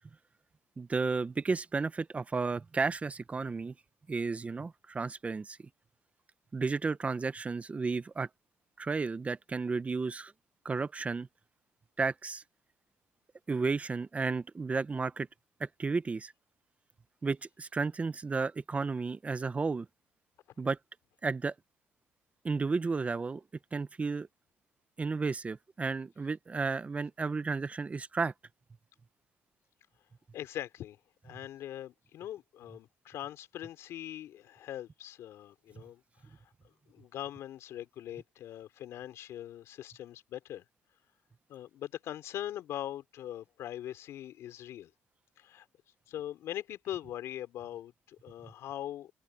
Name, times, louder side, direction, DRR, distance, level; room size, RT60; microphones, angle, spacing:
voice 1, 0.8-3.7 4.1-5.6 6.5-8.3 8.8-10.3 10.6-11.3 12.0-12.4 13.5-15.3 15.6-16.3 17.2-19.9 20.6-20.8 21.2-21.5 22.4-23.4 23.7-24.3 25.0-28.3, right 4 dB, 30° right, 0.9 m, -33 dB
voice 2, 30.3-36.5 36.9-40.6 41.5-44.9 45.4-45.7 46.1-49.1, left 12 dB, 75° left, 3.3 m, -42 dB
open air
cardioid pair, 80°, 5 cm